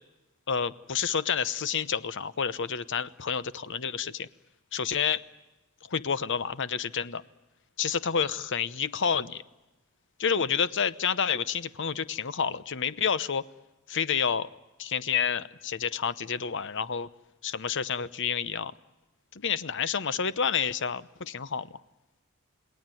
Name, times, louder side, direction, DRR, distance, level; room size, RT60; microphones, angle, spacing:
voice 1, 0.5-4.3 4.7-5.2 5.9-7.2 7.8-9.4 10.2-13.4 13.9-14.5 14.8-17.1 17.4-18.7 19.4-21.7, left 7 dB, 60° left, 16 dB, 0.9 m, -29 dB
28.5 x 19.5 x 9.1 m, 1.0 s
head